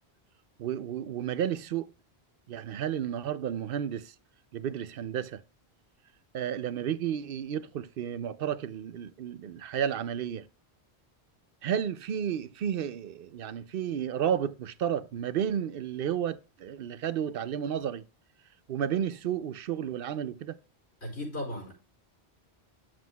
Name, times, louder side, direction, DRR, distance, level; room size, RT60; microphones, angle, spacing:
voice 1, 0.6-1.9 2.5-4.1 4.5-5.4 6.3-10.5 11.6-18.0 18.7-20.6, right 9 dB, 65° right, 0.7 m, -32 dB
voice 2, 21.0-21.7, left 1 dB, 85° left, 4.4 m, -36 dB
9.3 x 7.6 x 2.2 m
omnidirectional pair, 1.1 m